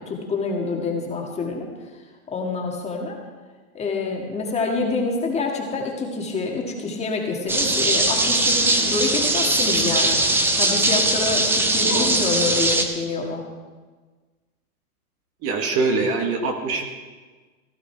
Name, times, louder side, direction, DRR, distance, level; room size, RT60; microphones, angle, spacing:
voice 1, 0.0-1.7 2.3-3.2 3.7-10.2 10.6-13.4, left 4 dB, 15° left, 0 dB, 1.9 m, -26 dB
sound 1, 7.5-12.8, right 2 dB, 5° right, 0.6 m, -20 dB
voice 2, 15.4-16.8, right 3 dB, 30° right, 4 dB, 1.5 m, -23 dB
16.5 x 12.0 x 4.6 m, 1.4 s
hypercardioid pair, 135°, 44 cm